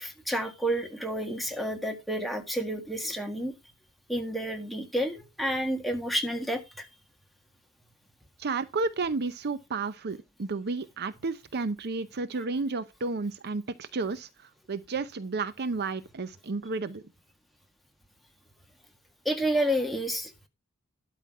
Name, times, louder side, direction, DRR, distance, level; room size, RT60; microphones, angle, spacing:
voice 1, 0.0-3.5 4.1-6.9 19.2-20.3, equal, ahead, 1.7 m, -30 dB
voice 2, 8.4-14.3 14.7-17.0, right 3 dB, 50° right, 0.6 m, -32 dB
12.0 x 5.8 x 4.7 m
head